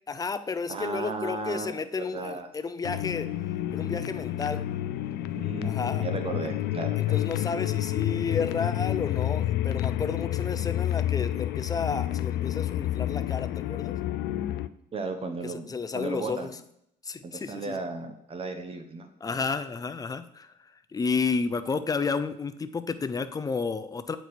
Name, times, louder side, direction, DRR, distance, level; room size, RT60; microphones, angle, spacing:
voice 1, 0.1-3.3 3.7-4.6 5.6-6.1 7.0-13.9 15.4-16.5 17.0-17.8 19.2-20.5 20.9-24.2, left 5 dB, 20° left, 11 dB, 0.5 m, -31 dB
voice 2, 0.7-2.5 5.4-7.3 14.9-15.7 15.9-16.6 17.2-19.1, right 3 dB, 35° right, 7 dB, 0.9 m, -35 dB
sound 1, 2.8-14.7, left 13 dB, 80° left, 0.4 m, -29 dB
8.1 x 4.6 x 4.2 m, 0.72 s
cardioid pair, 110°, 17 cm